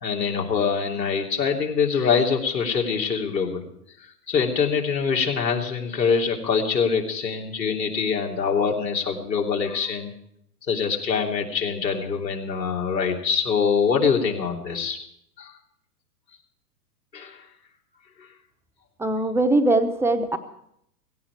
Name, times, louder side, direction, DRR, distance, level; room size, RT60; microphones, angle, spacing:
voice 1, 0.0-3.6 4.3-10.1 10.7-15.0 15.4-15.5 17.1-17.4 18.2-18.3, left 6 dB, 80° left, 1 dB, 3.2 m, -24 dB
voice 2, 19.0-20.4, right 2 dB, 5° right, 6 dB, 0.9 m, -21 dB
17.0 x 16.5 x 4.8 m, 0.73 s
hypercardioid pair, 115°, 50 cm